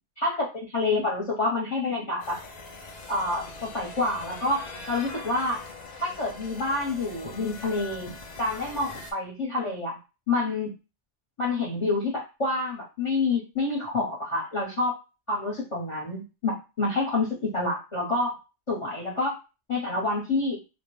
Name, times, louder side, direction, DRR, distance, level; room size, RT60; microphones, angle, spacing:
voice 1, 0.2-2.4 3.1-5.6 6.0-10.0 10.3-10.7 11.4-14.9 15.3-18.4 18.7-19.4 19.7-20.6, left 2 dB, 30° left, -5 dB, 1.0 m, -28 dB
sound 1, 2.2-9.1, left 2 dB, 55° left, 0.5 m, -42 dB
2.4 x 2.2 x 3.1 m, 0.29 s
omnidirectional pair, 1.2 m